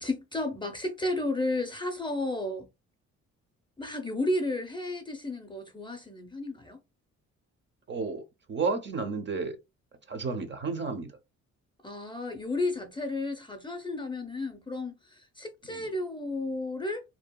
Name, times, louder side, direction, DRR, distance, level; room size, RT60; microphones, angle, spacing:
voice 1, 0.0-2.7 3.8-6.8 11.8-17.0, left 2 dB, 15° left, 0.5 m, -32 dB
voice 2, 7.9-9.6 10.1-11.1 15.7-15.9, right 4 dB, 40° right, 0.6 m, -32 dB
2.7 x 2.3 x 2.2 m
cardioid pair, 90°, 30 cm